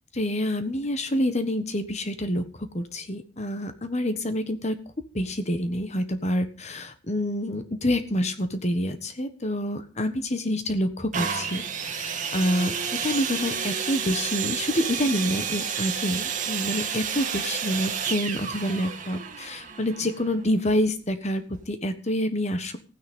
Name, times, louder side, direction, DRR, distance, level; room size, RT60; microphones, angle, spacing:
voice 1, 0.1-2.4 2.7-4.8 5.1-21.4 21.7-22.7, left 1 dB, 35° left, 10 dB, 1.4 m, -27 dB
sound 1, 11.1-20.8 21.5-21.6, right 7 dB, 40° right, 1.9 m, -31 dB
15.0 x 9.7 x 5.4 m, 0.37 s
head